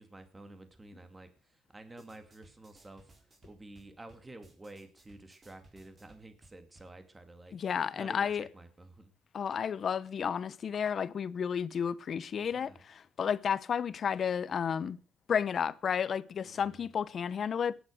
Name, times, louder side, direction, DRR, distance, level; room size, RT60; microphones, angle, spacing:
voice 1, 0.0-7.6 7.9-9.1 12.4-12.8 16.4-16.8, right 2 dB, 20° right, 2.3 m, -51 dB
sound 1, 1.9-6.9, right 2 dB, 35° right, 4.8 m, -62 dB
voice 2, 7.5-8.5 9.3-15.0 15.3-17.7, left 7 dB, 55° left, 0.8 m, -32 dB
14.0 x 10.5 x 6.5 m
cardioid pair, 90°, 0 cm